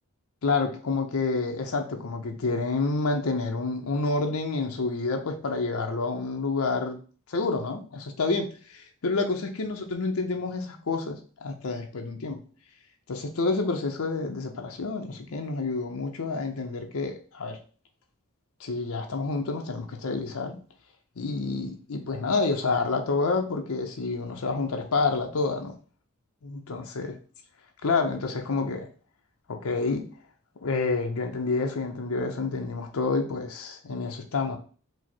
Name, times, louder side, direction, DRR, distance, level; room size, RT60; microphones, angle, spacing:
voice 1, 0.4-7.0 7.3-12.4 13.1-17.6 18.6-20.6 21.2-25.7 26.4-27.1 27.8-28.9 29.5-30.1 30.6-34.6, left 3 dB, 80° left, 0.6 m, -28 dB
4.9 x 2.0 x 4.3 m
head